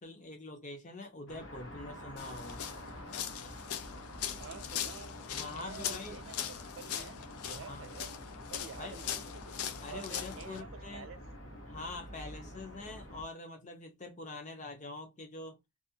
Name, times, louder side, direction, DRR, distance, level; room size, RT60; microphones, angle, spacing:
voice 1, 0.0-2.6 5.3-6.2 7.5-7.9 8.8-9.0 9.8-11.1 11.7-15.6, left 2 dB, 35° left, 0.6 m, -45 dB
sound 1, 1.3-13.2, equal, 55° left, 0.9 m, -48 dB
sound 2, 2.2-10.6, left 9 dB, 80° left, 0.4 m, -41 dB
voice 2, 4.4-6.4 6.8-8.1 8.5-11.2, right 6 dB, 60° right, 0.3 m, -49 dB
2.5 x 2.4 x 2.7 m
head